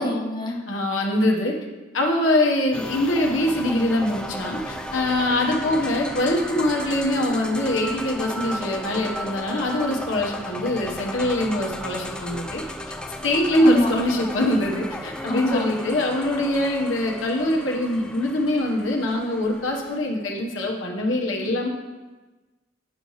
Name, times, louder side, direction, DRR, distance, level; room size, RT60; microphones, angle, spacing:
voice 1, 0.0-0.6 13.6-13.9 15.3-15.7, left 1 dB, 25° left, 0 dB, 0.8 m, -25 dB
voice 2, 0.7-1.5 1.9-12.6 13.2-21.7, left 1 dB, 90° left, 0 dB, 1.2 m, -23 dB
sound 1, 2.7-20.0, equal, 5° left, 0.4 m, -35 dB
9.8 x 5.6 x 3.2 m, 1.2 s
head